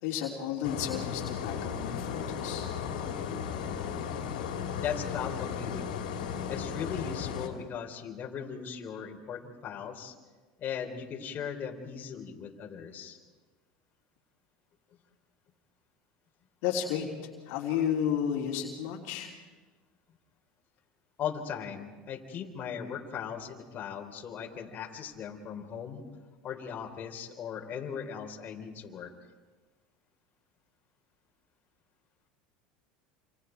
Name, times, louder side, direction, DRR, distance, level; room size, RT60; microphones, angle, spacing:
voice 1, 0.0-2.7 16.6-17.1 17.5-19.3, left 9 dB, 70° left, 0 dB, 3.4 m, -32 dB
sound 1, 0.6-7.5, left 7 dB, 85° left, 3.5 m, -35 dB
voice 2, 4.8-6.0 6.5-10.1 10.6-13.2 21.2-26.0 26.4-29.1, left 7 dB, 40° left, 1 dB, 3.8 m, -38 dB
28.0 x 27.5 x 4.6 m, 1.3 s
hypercardioid pair, 95°, 4 cm